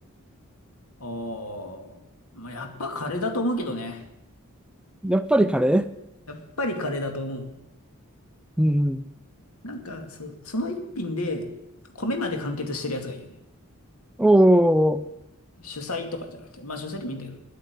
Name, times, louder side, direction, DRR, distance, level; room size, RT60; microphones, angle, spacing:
voice 1, 1.0-2.0 2.3-4.0 6.3-7.5 9.6-11.5 11.9-13.3 15.6-17.4, left 1 dB, 85° left, 5 dB, 2.3 m, -31 dB
voice 2, 5.0-5.9 8.6-9.0 14.2-15.0, right 1 dB, 5° right, 12 dB, 0.5 m, -19 dB
10.5 x 9.3 x 9.4 m, 0.87 s
head